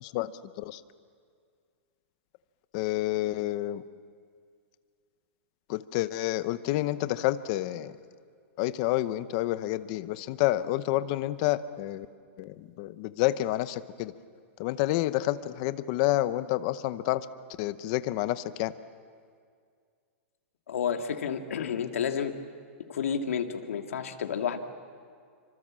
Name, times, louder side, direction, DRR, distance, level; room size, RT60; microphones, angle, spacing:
voice 1, 0.0-0.3 0.6-0.8 2.7-3.8 5.7-7.9 8.6-12.1 12.4-14.1 14.6-17.2 17.6-18.7, left 15 dB, 30° left, 14 dB, 0.7 m, -29 dB
voice 2, 20.7-22.4 22.9-24.6, left 7 dB, 90° left, 5 dB, 2.1 m, -30 dB
29.0 x 24.5 x 7.5 m, 2.1 s
supercardioid pair, 175°, 7 cm